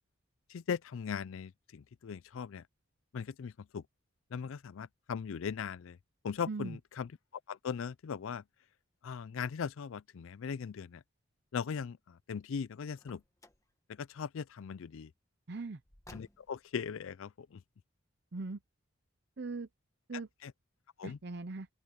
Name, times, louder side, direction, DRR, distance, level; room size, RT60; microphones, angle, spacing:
voice 1, 0.5-2.6 3.1-3.8 4.3-6.0 6.2-7.1 7.5-8.4 9.0-11.0 11.5-13.2 13.9-15.1 16.1-17.6 20.4-20.5 21.0-21.2, left 6 dB, 70° left, 0.4 m, -39 dB
voice 2, 6.5-6.8 15.5-15.8 18.3-18.6 19.4-19.7 20.1-20.3 21.0-21.7, right 3 dB, 50° right, 0.6 m, -39 dB
Car, 13.0-13.7 15.8-16.7, left 1 dB, 15° left, 1.4 m, -56 dB
open air
head